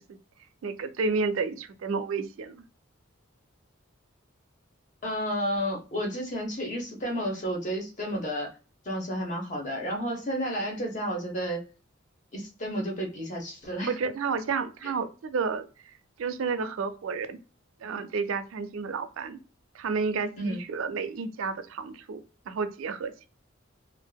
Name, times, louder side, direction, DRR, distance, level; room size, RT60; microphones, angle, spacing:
voice 1, 0.6-2.6 13.9-15.7 16.2-17.4 17.8-19.4 19.7-23.3, right 4 dB, 80° right, 10 dB, 0.4 m, -31 dB
voice 2, 5.0-8.5 8.8-11.6 12.3-14.0 14.8-14.9 20.4-20.6, equal, 35° left, 0 dB, 0.8 m, -31 dB
2.6 x 2.4 x 2.2 m, 0.34 s
head